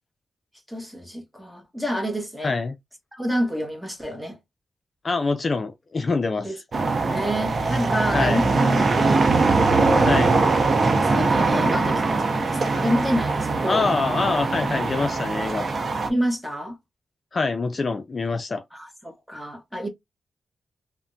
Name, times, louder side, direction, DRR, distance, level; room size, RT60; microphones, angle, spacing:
voice 1, 0.7-2.5 3.2-4.4 6.4-6.6 7.0-10.1 10.9-13.9 16.1-16.8 18.7-19.9, equal, ahead, 1.1 m, -28 dB
voice 2, 2.4-2.7 5.0-6.6 8.1-8.4 10.1-10.4 13.7-15.7 17.3-18.6, left 3 dB, 45° left, 0.4 m, -25 dB
sound 1, 6.7-16.1, right 3 dB, 50° right, 0.6 m, -22 dB
3.3 x 2.1 x 2.6 m
cardioid pair, 75°, 0 cm